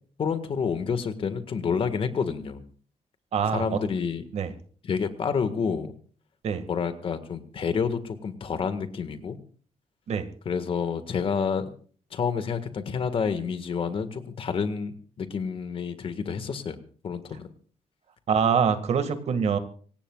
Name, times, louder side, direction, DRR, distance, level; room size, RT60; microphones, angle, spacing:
voice 1, 0.2-2.6 3.5-4.2 4.8-5.9 6.7-9.4 10.4-11.6 12.1-16.8 17.0-17.5, left 6 dB, 45° left, 10 dB, 1.7 m, -29 dB
voice 2, 3.3-3.6 4.3-4.5 6.4-6.6 10.1-10.3 18.3-19.6, right 6 dB, 55° right, 9 dB, 2.0 m, -24 dB
25.5 x 18.0 x 2.4 m, 0.44 s
wide cardioid pair, 175°, 13 cm